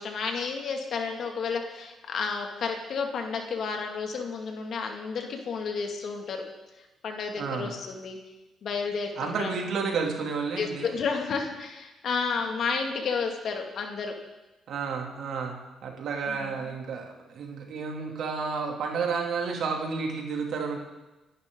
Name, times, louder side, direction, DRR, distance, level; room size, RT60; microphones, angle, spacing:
voice 1, 0.0-6.4 7.0-8.2 8.6-9.5 10.6-14.1 16.3-16.6, left 5 dB, 65° left, 3 dB, 2.4 m, -31 dB
voice 2, 7.4-7.7 9.2-10.9 14.7-20.8, right 5 dB, 70° right, 1 dB, 3.0 m, -31 dB
27.0 x 11.0 x 4.0 m, 1.1 s
cardioid pair, 90°, 0 cm